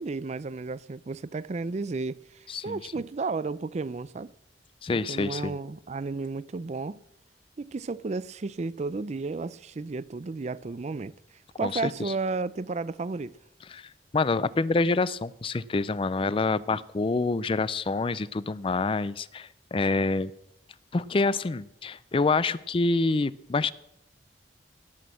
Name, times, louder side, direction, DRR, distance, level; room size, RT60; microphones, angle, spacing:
voice 1, 0.0-4.3 4.9-7.0 7.6-11.1 11.6-13.4 16.7-16.8, right 3 dB, 40° right, 0.4 m, -33 dB
voice 2, 2.5-2.9 4.8-5.5 11.6-12.1 13.7-20.3 20.9-23.7, left 3 dB, 30° left, 0.4 m, -27 dB
18.0 x 6.3 x 7.6 m
head